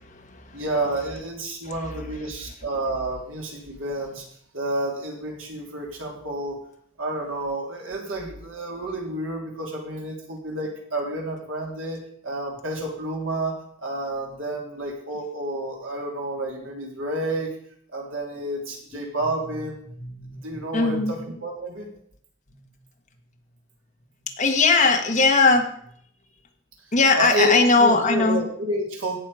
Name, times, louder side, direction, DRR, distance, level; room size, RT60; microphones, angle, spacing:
voice 1, 0.0-0.6 20.0-20.4 20.7-21.1 24.4-25.7 26.9-28.4, left 3 dB, 35° left, 3 dB, 1.6 m, -19 dB
voice 2, 0.5-4.3 4.5-6.6 7.0-17.6 17.9-19.8 20.4-21.9 27.2-29.2, right 1 dB, 80° right, -1 dB, 3.5 m, -30 dB
17.0 x 6.6 x 5.1 m, 0.64 s
head